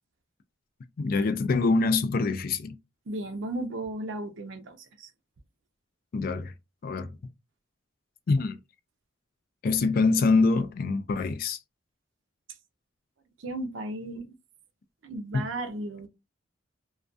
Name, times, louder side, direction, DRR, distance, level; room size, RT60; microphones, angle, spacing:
voice 1, 1.0-2.8 6.1-6.5 6.8-7.2 8.3-8.6 9.6-11.6 15.3-15.5, left 3 dB, 45° left, 0.3 m, -25 dB
voice 2, 3.1-5.1 13.4-14.3 15.0-16.1, right 1 dB, 70° right, 0.5 m, -35 dB
2.3 x 2.2 x 2.5 m
head